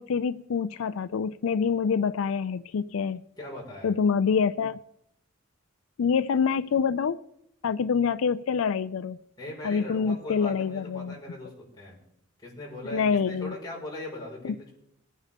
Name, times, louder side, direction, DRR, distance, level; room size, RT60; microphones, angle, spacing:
voice 1, 0.0-3.2 3.8-4.8 6.0-7.2 7.6-9.2 9.6-11.1 12.8-13.5 14.4-14.5, left 6 dB, 85° left, 14 dB, 0.4 m, -26 dB
voice 2, 3.4-3.9 9.4-12.0 12.4-14.7, left 1 dB, 20° left, -4 dB, 5.1 m, -40 dB
22.0 x 9.4 x 3.6 m, 0.76 s
head